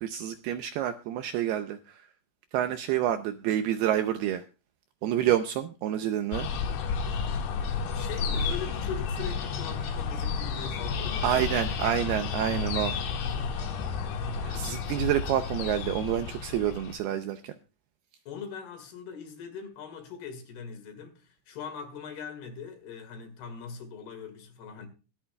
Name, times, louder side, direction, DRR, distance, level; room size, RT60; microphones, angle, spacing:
voice 1, 0.0-1.8 2.5-4.4 5.0-6.5 11.2-12.9 14.4-17.5, right 11 dB, 80° right, 2.4 m, -28 dB
sound 1, 6.3-17.0, left 5 dB, 85° left, 4.1 m, -31 dB
voice 2, 7.9-11.5 18.3-24.9, left 6 dB, 65° left, 3.8 m, -41 dB
24.0 x 8.6 x 2.3 m
omnidirectional pair, 5.2 m